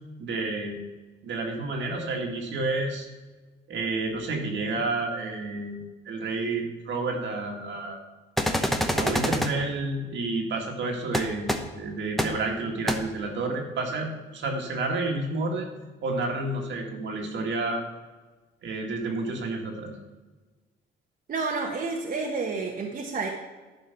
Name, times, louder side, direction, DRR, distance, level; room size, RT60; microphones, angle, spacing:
voice 1, 0.2-0.8 1.2-3.1 3.7-5.8 6.1-8.0 8.9-15.7 16.0-17.8 18.6-19.9, right 2 dB, 70° right, 1 dB, 1.9 m, -30 dB
sound 1, 8.4-9.5 11.1-11.2 11.5-11.6 12.2-12.3 12.9-13.0, equal, ahead, 0.9 m, -25 dB
voice 2, 21.3-23.3, right 4 dB, 45° right, -1 dB, 1.2 m, -30 dB
10.5 x 4.7 x 5.7 m, 1.3 s
cardioid pair, 90°, 20 cm